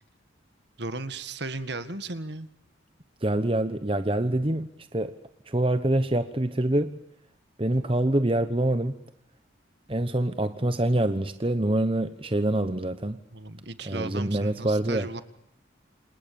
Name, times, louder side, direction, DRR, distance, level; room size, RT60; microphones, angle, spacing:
voice 1, 0.8-2.5 13.3-15.2, right 2 dB, 60° right, 12 dB, 1.9 m, -35 dB
voice 2, 3.2-5.1 5.4-7.0 7.6-9.0 9.9-13.2 13.8-15.1, right 1 dB, 25° right, 10 dB, 1.1 m, -25 dB
28.5 x 27.5 x 7.1 m, 0.80 s
head